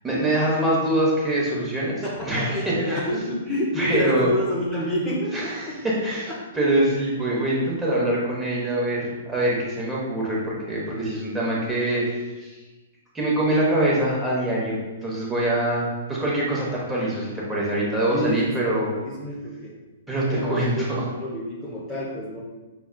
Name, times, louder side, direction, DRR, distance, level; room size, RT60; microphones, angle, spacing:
voice 1, 0.0-3.0 3.8-4.3 5.3-6.3 6.5-12.6 13.1-18.9 20.1-21.1, right 1 dB, 10° right, -6 dB, 1.0 m, -24 dB
voice 2, 2.0-5.8 6.3-6.4 18.1-18.5 18.8-19.8 20.3-22.4, equal, 10° left, -8 dB, 0.7 m, -28 dB
5.9 x 2.3 x 2.2 m, 1.2 s
hypercardioid pair, 135°, 0 cm